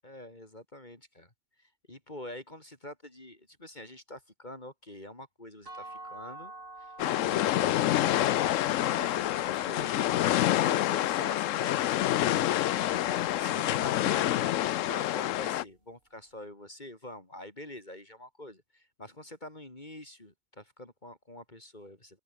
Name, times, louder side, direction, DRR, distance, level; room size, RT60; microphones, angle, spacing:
voice 1, 0.0-1.3 1.6-6.5 6.8-8.4 8.8-12.3 12.9-22.2, left 1 dB, 35° left, 3.8 m, -46 dB
sound 1, 5.7-11.5, right 2 dB, 80° right, 5.7 m, -49 dB
sound 2, 7.0-15.6, left 13 dB, 80° left, 1.0 m, -27 dB
omnidirectional pair, 1.3 m